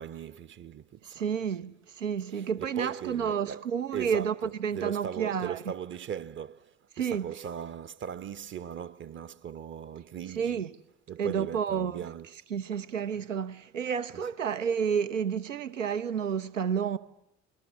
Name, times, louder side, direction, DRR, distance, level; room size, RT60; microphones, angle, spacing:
voice 1, 0.0-1.3 2.3-10.6 11.1-12.3 14.1-14.2, right 8 dB, 30° right, 0.8 m, -39 dB
voice 2, 1.0-5.6 7.0-7.3 10.3-10.7 11.2-12.0 12.5-17.0, right 7 dB, 80° right, 0.9 m, -30 dB
30.0 x 20.5 x 7.4 m
figure-of-eight pair, 55°, 37 cm